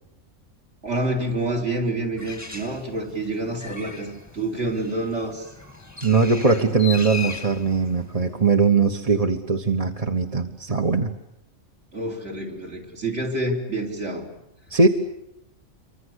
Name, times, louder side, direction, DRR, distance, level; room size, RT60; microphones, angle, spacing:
voice 1, 0.8-5.5 11.9-14.3, right 2 dB, 55° right, 4 dB, 4.7 m, -28 dB
Bird, 2.2-8.7, left 5 dB, 15° left, 1.2 m, -39 dB
voice 2, 6.0-11.1 14.7-14.9, right 4 dB, 30° right, 3 dB, 1.3 m, -20 dB
27.0 x 24.5 x 8.2 m, 0.85 s
omnidirectional pair, 1.4 m